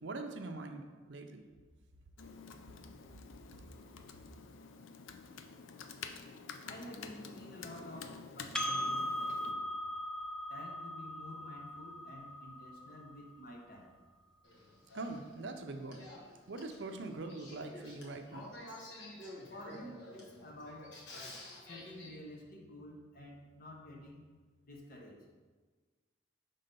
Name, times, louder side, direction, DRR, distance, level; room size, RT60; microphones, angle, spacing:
voice 1, 0.0-1.4 14.9-16.1 16.5-18.5, right 2 dB, 65° right, 6 dB, 0.5 m, -43 dB
Computer keyboard, 2.2-9.5, left 5 dB, 85° left, 0.5 m, -49 dB
voice 2, 6.6-9.7 10.5-13.9 19.5-21.0 21.6-24.3 24.6-25.3, left 1 dB, 50° left, 0 dB, 1.0 m, -50 dB
Percussion, 8.6-13.4, left 1 dB, 5° left, 0.4 m, -39 dB
Male speech man speaking / Female speech woman speaking / Conversation, 14.4-22.1, left 1 dB, 70° left, 1.3 m, -51 dB
5.5 x 3.8 x 5.2 m, 1.4 s
head